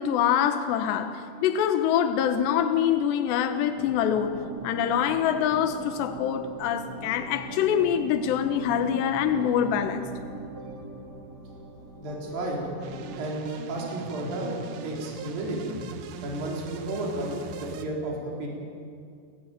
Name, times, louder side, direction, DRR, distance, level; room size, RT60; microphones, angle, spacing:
voice 1, 0.0-4.3 4.6-10.1, left 9 dB, 85° left, 3.2 m, -25 dB
sound 1, 3.7-13.3, right 2 dB, 25° right, 2.6 m, -41 dB
voice 2, 12.0-12.6 13.1-14.5 14.8-15.8 16.2-18.5, right 1 dB, 55° right, 5.7 m, -32 dB
sound 2, 12.8-17.9, right 7 dB, 85° right, 3.5 m, -41 dB
30.0 x 17.0 x 9.1 m
omnidirectional pair, 4.9 m